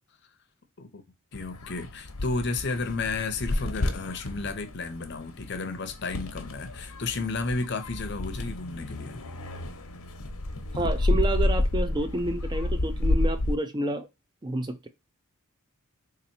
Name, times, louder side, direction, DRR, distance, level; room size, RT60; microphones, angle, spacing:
sound 1, 1.3-13.6, left 2 dB, 85° left, 0.8 m, -30 dB
voice 1, 1.3-9.2, left 3 dB, 50° left, 0.6 m, -32 dB
voice 2, 10.7-14.1 14.4-14.9, right 2 dB, 20° right, 0.4 m, -29 dB
3.9 x 2.9 x 2.7 m
head